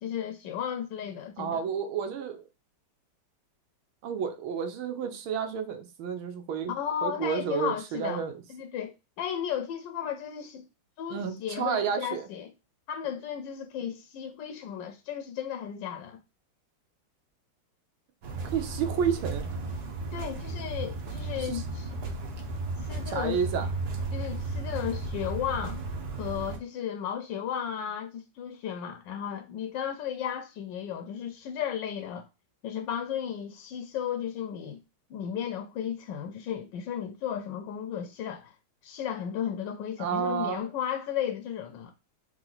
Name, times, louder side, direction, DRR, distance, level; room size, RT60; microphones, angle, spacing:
voice 1, 0.0-1.6 6.7-8.2 8.5-10.7 11.0-12.5 12.9-16.2 20.1-21.9 22.8-23.4 24.1-25.8 26.2-32.3 32.6-34.8 35.1-38.5 38.8-41.9, left 9 dB, 75° left, 1.1 m, -34 dB
voice 2, 1.4-2.4 4.0-6.7 7.0-8.3 11.1-12.2 18.4-19.5 21.4-21.6 23.1-23.7 40.0-40.6, right 7 dB, 80° right, 1.6 m, -31 dB
sound 1, 18.2-26.6, right 2 dB, 55° right, 1.3 m, -34 dB
3.8 x 3.1 x 3.9 m
omnidirectional pair, 2.3 m